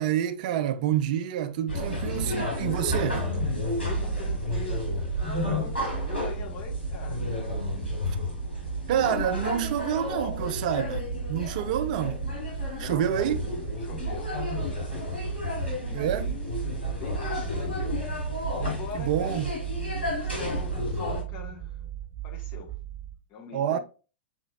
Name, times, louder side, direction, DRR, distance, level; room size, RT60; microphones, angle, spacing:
voice 1, 0.0-3.3 8.9-12.3 12.8-13.4 15.9-16.3 18.9-19.5 23.5-23.8, right 10 dB, 50° right, 0.4 m, -28 dB
sound 1, 1.7-21.2, equal, 90° left, 1.9 m, -31 dB
voice 2, 3.8-7.2 12.7-13.4 13.8-15.1 15.4-16.6 17.0-19.5 20.2-21.8 22.2-22.8 23.3-23.8, left 5 dB, 35° left, 1.3 m, -42 dB
sound 2, 16.1-23.2, right 13 dB, 20° right, 1.4 m, -38 dB
5.7 x 3.0 x 2.4 m
figure-of-eight pair, 95°, 6 cm